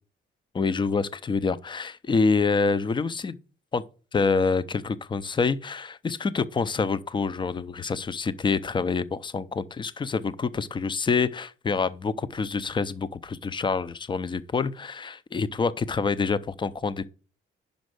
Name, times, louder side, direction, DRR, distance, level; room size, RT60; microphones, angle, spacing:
voice 1, 0.5-3.4 3.7-3.8 4.1-17.1, left 4 dB, 25° left, 0.5 m, -26 dB
5.2 x 5.2 x 6.4 m
cardioid pair, 90°, 20 cm